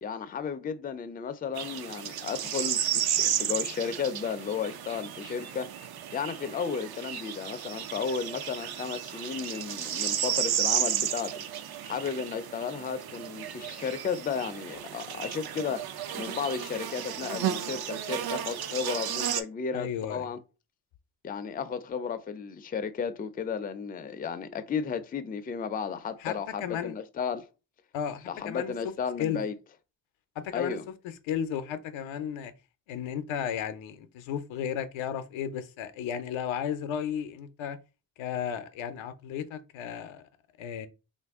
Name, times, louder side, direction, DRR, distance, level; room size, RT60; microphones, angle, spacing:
voice 1, 0.0-5.7 6.1-11.4 11.8-15.8 16.1-20.4 21.2-27.5 28.3-29.5 30.5-30.9, left 6 dB, 20° left, 0.3 m, -34 dB
sound 1, 1.5-19.4, right 10 dB, 55° right, 0.5 m, -33 dB
voice 2, 19.7-20.3 26.2-27.0 27.9-28.9 29.2-29.4 30.4-30.8 31.2-32.5 32.9-37.8 38.2-40.2 40.6-40.9, left 8 dB, 85° left, 0.5 m, -34 dB
2.8 x 2.5 x 3.5 m
cardioid pair, 65°, 45 cm